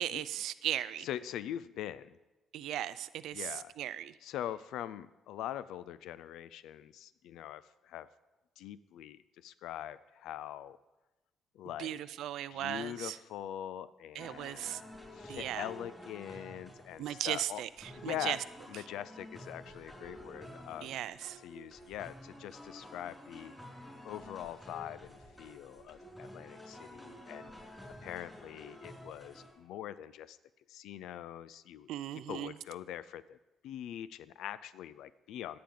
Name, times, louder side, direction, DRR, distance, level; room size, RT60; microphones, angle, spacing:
voice 1, 0.0-1.1 2.5-3.5 3.8-4.1 11.8-13.2 14.2-14.8 15.3-15.6 17.0-17.7 18.0-18.4 20.8-21.4 31.9-32.5, right 12 dB, 85° right, 15 dB, 0.4 m, -37 dB
voice 2, 1.0-2.2 3.3-3.7 4.2-8.1 8.6-10.8 11.5-12.0 12.5-17.6 18.0-18.4 18.7-20.9 21.4-23.5 24.0-27.5 28.0-30.4 30.7-33.4 33.6-35.6, left 11 dB, 85° left, 16 dB, 0.4 m, -43 dB
sound 1, 14.2-29.5, left 1 dB, 5° left, 5.3 m, -51 dB
21.5 x 8.6 x 3.8 m, 1.1 s
cardioid pair, 110°, 0 cm